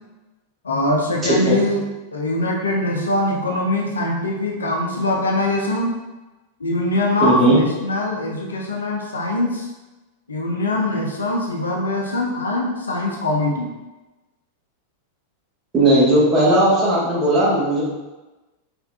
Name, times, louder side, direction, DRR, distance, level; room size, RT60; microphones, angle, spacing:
voice 1, 0.6-1.8 2.1-5.9 6.6-9.7 10.3-13.7, left 1 dB, 75° left, -1 dB, 0.7 m, -22 dB
voice 2, 1.3-1.6 7.2-7.6 15.7-17.8, right 1 dB, 25° right, -6 dB, 1.4 m, -16 dB
4.1 x 3.4 x 2.4 m, 1.1 s
figure-of-eight pair, 90°, 0 cm